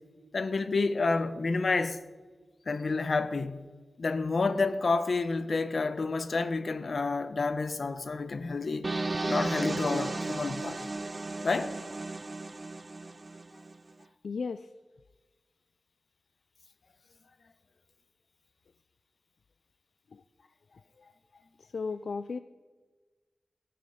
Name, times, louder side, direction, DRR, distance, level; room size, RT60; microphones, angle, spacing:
voice 1, 0.3-2.0 2.7-3.7 4.0-8.9 9.3-10.9 11.4-11.8, left 3 dB, 60° left, 0.8 m, -29 dB
sound 1, 8.8-13.8, right 2 dB, 30° right, 0.3 m, -34 dB
voice 2, 14.2-14.7 20.1-20.2 21.0-21.1 21.6-22.4, left 4 dB, 80° left, 0.4 m, -35 dB
16.0 x 9.9 x 5.0 m
wide cardioid pair, 100°, 0 cm